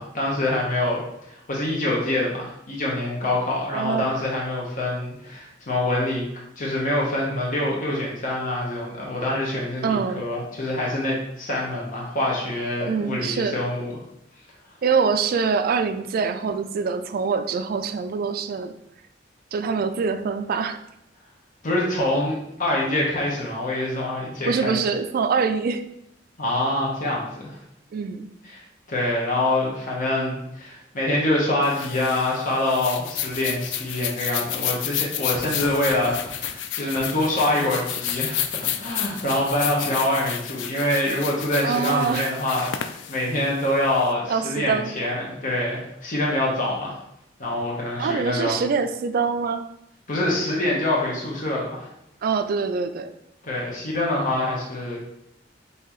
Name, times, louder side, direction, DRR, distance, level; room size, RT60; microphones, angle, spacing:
voice 1, 0.0-6.2 6.6-13.9 21.6-24.8 26.4-27.6 28.4-28.6 28.9-38.4 38.8-47.0 47.4-48.6 50.1-51.9 53.4-55.2, left 1 dB, 45° left, -3 dB, 0.9 m, -25 dB
voice 2, 3.7-4.1 9.8-10.2 12.9-13.6 14.8-18.7 19.5-20.8 24.4-25.8 27.9-28.3 41.6-42.3 44.3-44.9 48.0-49.6 52.2-53.1, right 5 dB, 55° right, 9 dB, 0.3 m, -24 dB
sound 1, 31.6-44.1, left 10 dB, 70° left, 0.4 m, -31 dB
sound 2, 33.1-34.3 34.5-34.7 35.3-36.5 37.0-37.4 38.1-39.6, equal, 10° left, 1.0 m, -43 dB
5.5 x 2.8 x 3.0 m, 0.80 s
head